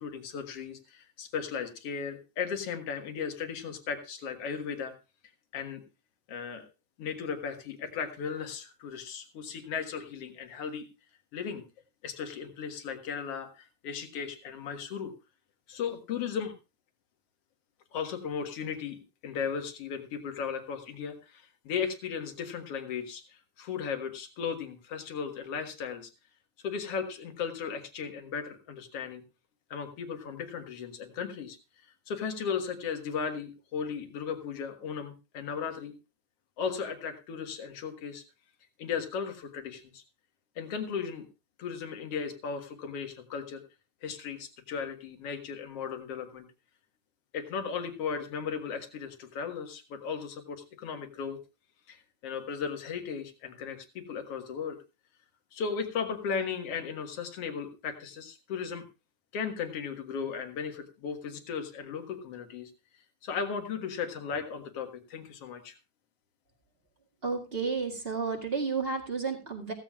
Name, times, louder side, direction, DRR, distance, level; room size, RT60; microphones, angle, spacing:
voice 1, 0.0-4.9 5.5-5.8 6.3-6.6 7.0-10.9 11.3-11.6 12.0-15.1 15.7-16.5 17.9-26.1 26.6-29.2 29.7-31.6 32.1-35.9 36.6-38.2 38.8-40.0 40.6-41.3 41.6-43.6 44.0-46.5 47.3-51.4 51.9-54.8 55.5-58.8 59.3-62.7 63.2-65.8, left 6 dB, 55° left, 6 dB, 2.3 m, -36 dB
voice 2, 67.2-69.7, right 4 dB, 25° right, 1 dB, 1.7 m, -31 dB
15.5 x 15.0 x 2.4 m, 0.30 s
omnidirectional pair, 3.4 m